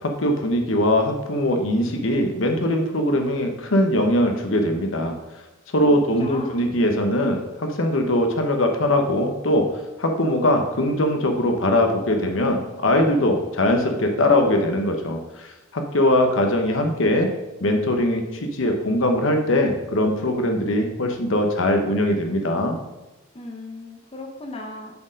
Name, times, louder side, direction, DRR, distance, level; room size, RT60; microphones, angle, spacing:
voice 1, 0.0-5.2 5.7-9.7 10.0-17.3 17.6-22.8, left 1 dB, 75° left, 4 dB, 0.9 m, -21 dB
voice 2, 5.9-6.7 23.3-25.0, left 2 dB, 30° left, 1 dB, 0.8 m, -37 dB
6.7 x 4.6 x 5.1 m, 1.1 s
head